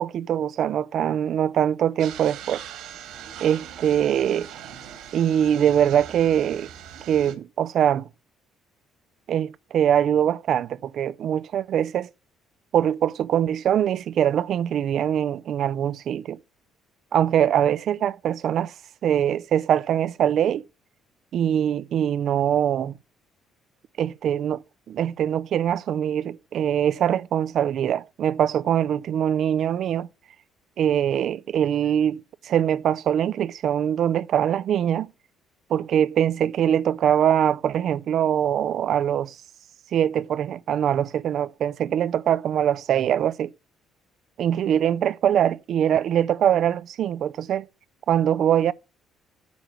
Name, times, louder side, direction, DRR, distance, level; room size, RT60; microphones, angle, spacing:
voice 1, 0.0-2.6 3.4-4.5 5.1-6.7 7.1-8.1 9.3-12.1 12.7-16.4 17.1-18.7 19.0-20.7 21.3-22.9 24.0-30.1 30.8-35.1 35.7-39.4 39.9-43.5 44.4-47.7 48.1-48.7, right 9 dB, 50° right, 0.4 m, -23 dB
sound 1, 2.0-7.3, right 9 dB, 70° right, 2.2 m, -40 dB
9.4 x 5.9 x 6.2 m
cardioid pair, 155°, 0 cm